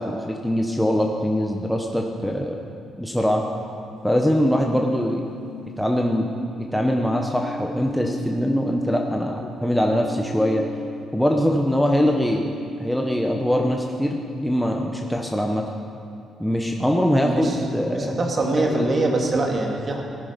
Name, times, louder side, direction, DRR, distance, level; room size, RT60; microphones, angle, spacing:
voice 1, 0.0-2.6 3.0-3.4 4.0-5.3 5.8-6.3 6.7-10.6 11.1-12.5 12.8-15.6 16.4-18.2, equal, ahead, 1 dB, 1.1 m, -22 dB
sound 1, 3.7-14.8 16.5-19.2, left 1 dB, 40° left, 1.9 m, -36 dB
voice 2, 17.2-17.6 17.9-20.0, right 2 dB, 40° right, 0 dB, 2.3 m, -23 dB
17.0 x 10.0 x 5.3 m, 2.5 s
cardioid pair, 90°, 0 cm